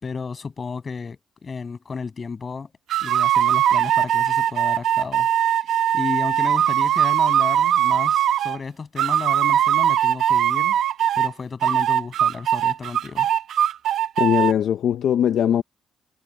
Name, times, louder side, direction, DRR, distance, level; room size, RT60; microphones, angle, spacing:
voice 1, 0.0-2.7 3.0-5.3 5.9-10.8 11.2-13.3, left 5 dB, 35° left, 7.1 m, -32 dB
sound 1, 2.9-8.6 9.0-11.3 11.6-14.5, right 10 dB, 70° right, 1.0 m, -20 dB
voice 2, 14.2-15.6, left 9 dB, 70° left, 0.9 m, -20 dB
cardioid pair, 90°, 0 cm